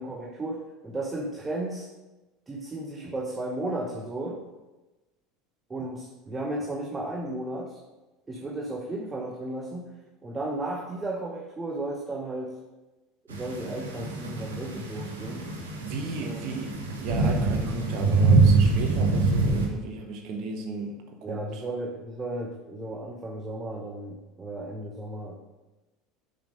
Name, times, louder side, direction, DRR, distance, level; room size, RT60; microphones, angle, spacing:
voice 1, 0.0-1.9 2.5-4.4 5.7-7.8 8.3-10.0 10.2-12.6 13.3-15.5 16.2-16.4 21.2-25.4, right 1 dB, 20° right, 0 dB, 1.0 m, -34 dB
sound 1, 13.3-19.7, right 3 dB, 75° right, 1.3 m, -24 dB
voice 2, 15.8-21.4, right 3 dB, 50° right, 3 dB, 1.1 m, -35 dB
7.1 x 5.7 x 5.3 m, 1.1 s
figure-of-eight pair, 70°, 0 cm